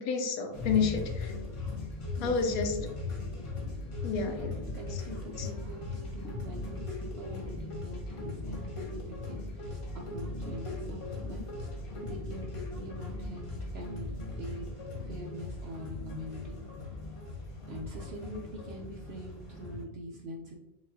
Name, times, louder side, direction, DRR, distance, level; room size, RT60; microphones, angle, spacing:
voice 1, 0.0-1.3 2.2-2.8 4.0-4.5 4.9-5.0 5.4-5.5, left 5 dB, 85° left, 5 dB, 1.1 m, -30 dB
sound 1, 0.5-19.8, left 2 dB, 45° left, 0.4 m, -39 dB
voice 2, 2.2-2.7 4.1-4.3 4.7-11.4 12.0-14.7 15.1-16.6 17.7-20.5, right 1 dB, 65° right, 0 dB, 0.6 m, -44 dB
4.6 x 2.4 x 2.7 m, 0.93 s
omnidirectional pair, 1.5 m